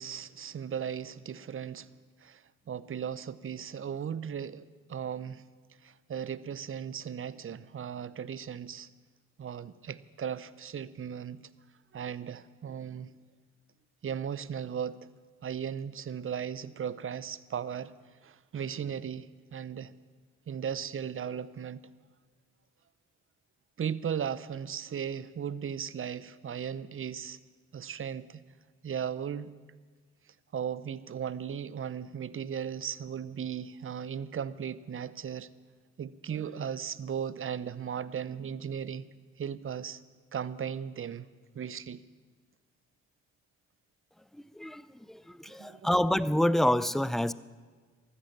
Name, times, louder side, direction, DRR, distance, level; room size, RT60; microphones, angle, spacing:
voice 1, 0.0-1.9 2.2-5.4 5.8-8.9 9.4-11.4 11.9-13.1 14.0-15.1 15.4-17.9 18.2-19.9 20.5-21.8 23.8-27.4 27.7-28.4 28.8-29.5 30.3-35.5 36.0-39.0 39.4-40.0 40.3-41.3 41.5-42.0 45.5-45.9, right 8 dB, 35° right, 17 dB, 0.8 m, -37 dB
voice 2, 44.3-47.3, left 1 dB, ahead, 17 dB, 0.5 m, -28 dB
14.0 x 13.0 x 7.5 m, 1.5 s
hypercardioid pair, 40°, 34 cm